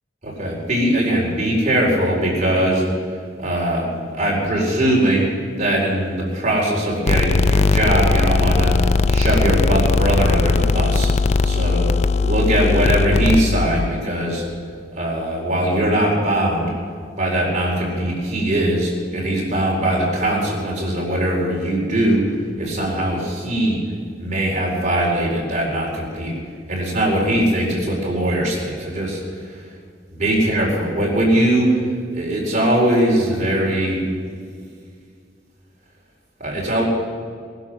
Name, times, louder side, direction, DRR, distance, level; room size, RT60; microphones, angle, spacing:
voice 1, 0.2-2.8 3.4-5.3 5.6-8.8 9.1-11.1 11.4-11.9 12.2-14.4 14.9-16.7 17.2-23.8 24.2-26.4 26.7-29.2 30.1-31.8 32.1-34.0 36.4-36.8, right 1 dB, 40° right, -3 dB, 4.2 m, -20 dB
sound 1, 7.1-13.9, left 4 dB, 40° left, 0.4 m, -18 dB
19.0 x 11.5 x 6.2 m, 2.1 s
head